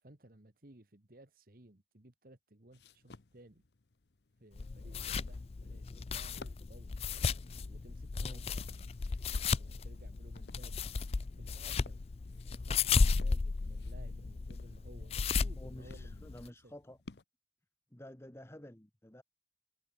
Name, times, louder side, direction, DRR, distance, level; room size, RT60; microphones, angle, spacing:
voice 1, 0.0-3.6 4.4-7.0 7.7-9.0 9.5-10.9 11.4-12.0 12.5-16.7, right 1 dB, 50° right, 1.7 m, -58 dB
sound 1, 2.7-17.2, left 3 dB, 70° left, 0.8 m, -58 dB
sound 2, 4.6-16.5, left 4 dB, 35° left, 0.4 m, -34 dB
voice 2, 15.6-17.0 17.9-19.2, left 1 dB, 15° left, 1.1 m, -51 dB
head